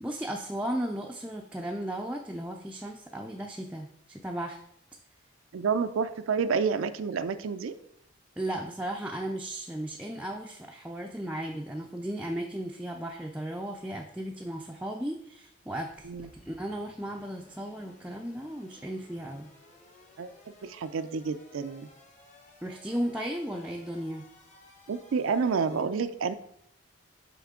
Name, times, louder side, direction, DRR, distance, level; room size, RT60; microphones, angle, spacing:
voice 1, 0.0-4.6 8.4-19.5 22.6-24.2, right 1 dB, 5° right, 0 dB, 0.3 m, -35 dB
voice 2, 5.5-7.7 16.0-16.3 20.2-21.9 24.9-26.3, right 5 dB, 85° right, 10 dB, 0.4 m, -29 dB
sound 1, 15.9-25.8, left 1 dB, 35° left, 1.2 m, -57 dB
9.1 x 3.6 x 3.6 m, 0.73 s
head